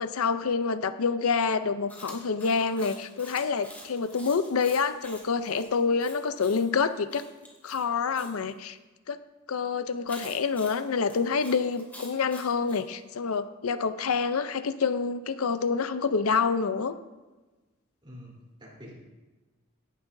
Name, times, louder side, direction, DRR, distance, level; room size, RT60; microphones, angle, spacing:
voice 1, 0.0-7.3 7.6-8.8 9.1-9.2 9.5-16.9, left 5 dB, 90° left, 12 dB, 0.6 m, -27 dB
Chewing mastication, 1.9-8.3 10.1-12.8, left 1 dB, 10° left, 2.6 m, -48 dB
voice 2, 18.0-18.9, equal, 25° right, -4 dB, 3.5 m, -47 dB
17.5 x 11.0 x 2.7 m, 1.2 s
head